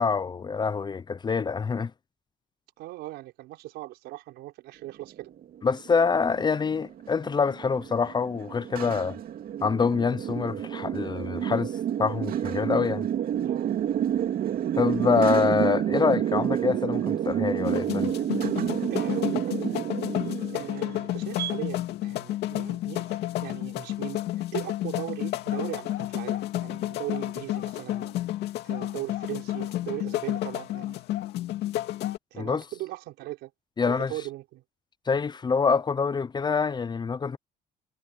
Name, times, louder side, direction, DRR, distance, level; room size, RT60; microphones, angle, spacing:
voice 1, 0.0-1.9 5.6-9.2 9.6-11.7 12.0-13.1 14.8-18.1 32.4-32.6 33.8-34.1 35.1-37.4, left 5 dB, 25° left, 0.6 m, -25 dB
voice 2, 2.8-5.3 13.4-13.7 18.9-19.7 20.5-28.2 28.6-31.0 32.3-33.5 33.8-34.6, right 17 dB, 85° right, 5.0 m, -39 dB
sound 1, 5.1-21.5, right 10 dB, 60° right, 2.6 m, -29 dB
sound 2, 17.6-32.2, left 14 dB, 80° left, 2.3 m, -31 dB
cardioid pair, 110°, 17 cm